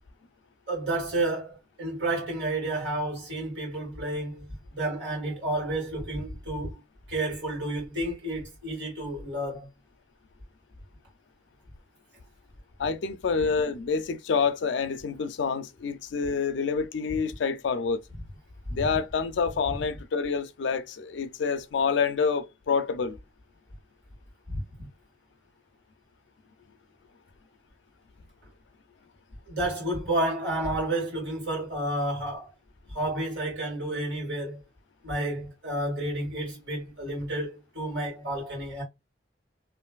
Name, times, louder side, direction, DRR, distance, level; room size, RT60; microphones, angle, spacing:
voice 1, 0.7-6.8 7.1-9.7 18.8-18.9 24.5-24.6 29.5-32.5 32.9-34.6 35.0-38.8, right 1 dB, 75° right, 1.9 m, -31 dB
voice 2, 12.8-18.0 18.7-23.2, left 5 dB, 70° left, 0.4 m, -27 dB
3.1 x 2.5 x 2.3 m
head